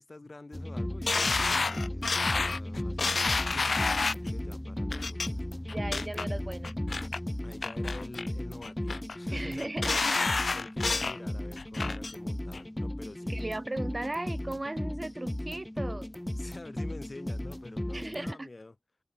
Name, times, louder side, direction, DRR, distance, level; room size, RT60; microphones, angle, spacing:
voice 1, 0.0-5.5 7.4-9.7 10.5-13.6 16.3-18.8, left 2 dB, 50° left, 5.5 m, -47 dB
sound 1, 0.5-18.3, left 1 dB, 15° left, 0.8 m, -36 dB
sound 2, 1.1-4.3 4.9-5.3 5.7-6.3 6.6-7.2 7.6-8.3 8.6-9.2 9.6-11.2 11.6-12.1 12.5-12.6, left 4 dB, 80° left, 1.5 m, -29 dB
voice 2, 5.7-6.7 9.3-10.3 13.3-16.1 17.9-18.5, right 2 dB, 35° right, 5.0 m, -37 dB
wide cardioid pair, 55°, 0 cm